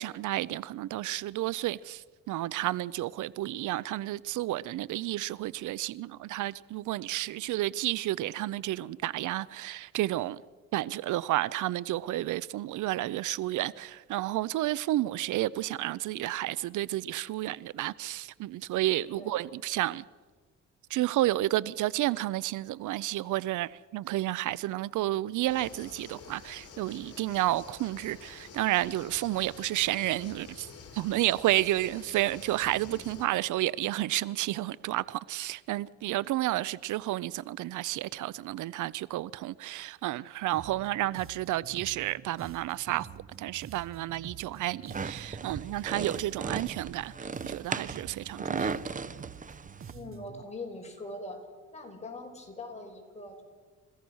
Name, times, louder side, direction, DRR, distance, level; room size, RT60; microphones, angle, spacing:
voice 1, 0.0-10.4 10.7-20.0 20.9-43.1 43.4-48.8, right 15 dB, 80° right, 0.6 m, -31 dB
sound 1, 25.5-33.3, left 5 dB, 50° left, 3.5 m, -49 dB
sound 2, 40.5-50.4, right 7 dB, 45° right, 1.2 m, -48 dB
sound 3, 44.9-49.9, right 4 dB, 25° right, 0.8 m, -36 dB
voice 2, 49.9-51.4 51.7-53.4, left 2 dB, 20° left, 5.6 m, -42 dB
30.0 x 15.5 x 6.3 m
cardioid pair, 90°, 30 cm